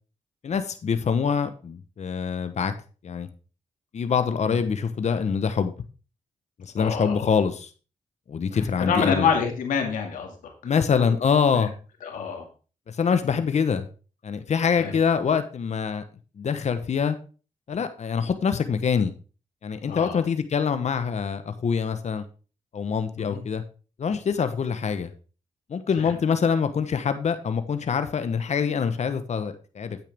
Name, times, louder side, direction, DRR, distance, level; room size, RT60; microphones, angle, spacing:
voice 1, 0.4-2.7 3.0-3.3 3.9-5.7 6.6-7.7 8.3-9.3 10.6-11.7 12.9-13.9 14.2-16.0 16.4-17.2 17.7-19.1 19.6-22.2 22.7-23.6 24.0-25.1 25.7-30.0, left 6 dB, 60° left, 10 dB, 1.0 m, -25 dB
voice 2, 6.8-7.3 8.5-10.7 11.5-11.7 12.0-12.4 14.8-14.9 19.9-20.2 23.2-23.4 26.0-26.1, left 6 dB, 85° left, 3 dB, 2.2 m, -27 dB
9.1 x 8.5 x 3.5 m, 0.36 s
supercardioid pair, 50°, 13 cm